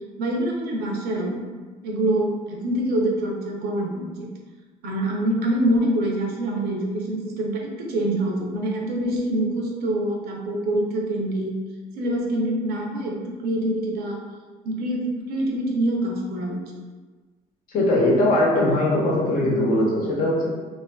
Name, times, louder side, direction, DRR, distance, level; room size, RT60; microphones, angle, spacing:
voice 1, 0.2-1.4 1.8-4.3 4.8-11.6 11.9-14.2 14.6-16.8, right 1 dB, 70° right, -1 dB, 0.6 m, -25 dB
voice 2, 17.7-20.5, left 1 dB, 60° left, -4 dB, 0.8 m, -20 dB
2.5 x 2.4 x 2.2 m, 1.3 s
cardioid pair, 110°, 17 cm